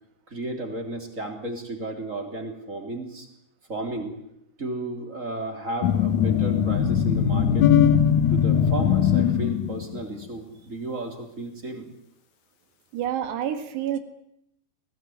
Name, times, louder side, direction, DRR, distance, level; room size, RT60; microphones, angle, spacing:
voice 1, 0.3-3.3 3.7-4.2 4.6-7.7 8.3-11.9, right 2 dB, 20° right, 4 dB, 3.0 m, -33 dB
sound 1, 5.8-10.0, left 8 dB, 70° left, 1.8 m, -20 dB
voice 2, 12.9-14.0, right 10 dB, 75° right, 8 dB, 3.9 m, -28 dB
22.5 x 17.5 x 9.5 m, 0.79 s
omnidirectional pair, 5.1 m